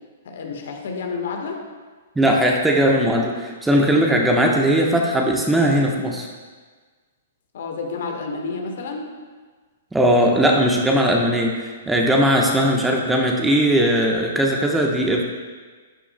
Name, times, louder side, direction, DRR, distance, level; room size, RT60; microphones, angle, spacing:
voice 1, 0.2-1.6 7.5-9.1, left 4 dB, 55° left, 2 dB, 1.5 m, -30 dB
voice 2, 2.2-6.3 9.9-15.2, equal, 5° right, 0 dB, 1.1 m, -19 dB
12.5 x 9.8 x 2.2 m, 1.4 s
figure-of-eight pair, 115°, 0 cm